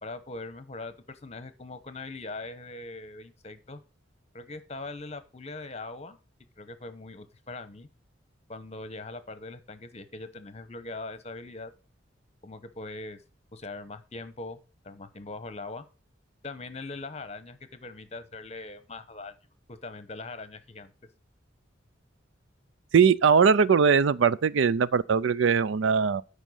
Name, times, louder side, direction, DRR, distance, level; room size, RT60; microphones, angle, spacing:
voice 1, 0.0-3.8 4.3-6.2 6.6-7.9 8.5-11.7 12.4-13.2 13.5-14.6 14.8-15.8 16.4-19.3 19.7-20.9, left 3 dB, 35° left, 1.0 m, -41 dB
voice 2, 22.9-26.2, right 6 dB, 75° right, 0.4 m, -21 dB
9.1 x 5.2 x 6.3 m
head